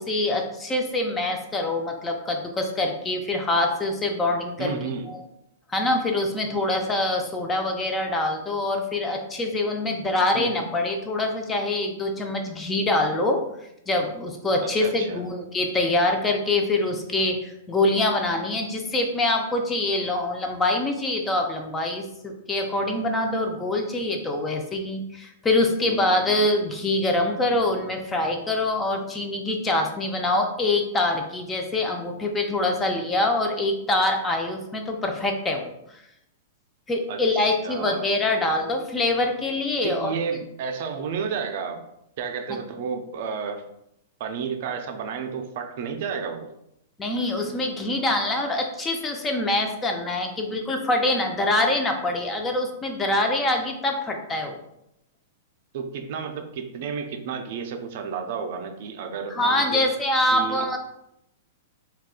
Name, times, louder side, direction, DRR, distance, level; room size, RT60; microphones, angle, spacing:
voice 1, 0.0-4.7 5.1-5.2 5.7-13.4 13.9-36.0 36.9-40.1 47.0-54.6 59.4-60.8, left 2 dB, 15° left, 3 dB, 0.4 m, -25 dB
voice 2, 4.6-5.1 10.3-10.7 14.6-15.3 25.8-26.4 37.1-38.1 39.8-41.8 42.2-43.6 44.2-46.5 55.7-59.8 60.3-60.7, right 6 dB, 60° right, 5 dB, 0.4 m, -32 dB
3.5 x 2.3 x 2.4 m, 0.80 s
hypercardioid pair, 125°, 0 cm